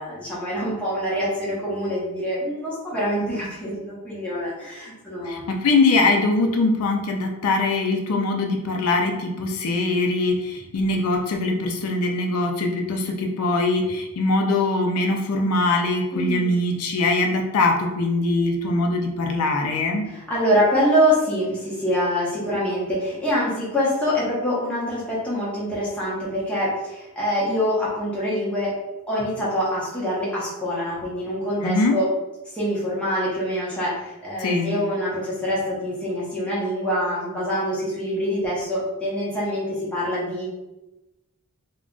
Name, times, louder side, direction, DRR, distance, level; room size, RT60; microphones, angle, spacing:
voice 1, 0.0-5.6 16.1-16.6 20.1-28.8 29.1-32.1 32.5-40.5, equal, 5° left, -8 dB, 0.8 m, -25 dB
voice 2, 5.2-20.1 31.6-32.0 34.4-34.8, left 2 dB, 80° left, 2 dB, 0.4 m, -22 dB
2.3 x 2.2 x 3.7 m, 1.0 s
head